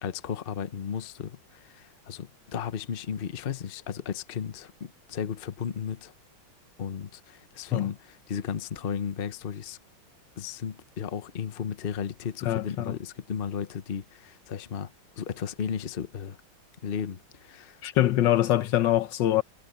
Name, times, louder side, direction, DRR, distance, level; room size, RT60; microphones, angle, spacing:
voice 1, 0.0-6.1 6.8-9.8 10.4-16.4 16.8-17.8, left 7 dB, 45° left, 0.7 m, -35 dB
voice 2, 12.5-13.0 17.8-19.4, left 13 dB, 70° left, 1.3 m, -24 dB
omnidirectional pair, 2.2 m